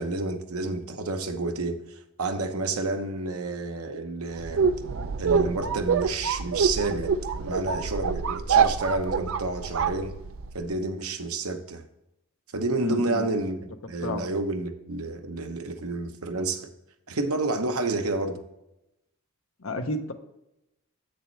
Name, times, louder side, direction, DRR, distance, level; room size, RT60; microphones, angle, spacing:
voice 1, 0.0-1.8 2.2-4.6 5.2-10.2 10.5-11.8 12.5-16.7 17.1-18.4, right 3 dB, 85° right, 0.9 m, -30 dB
sound 1, 4.4-10.6, right 6 dB, 65° right, 0.5 m, -26 dB
voice 2, 12.8-13.3 14.0-14.2 19.6-20.1, left 1 dB, 65° left, 0.9 m, -31 dB
8.2 x 6.7 x 3.2 m
head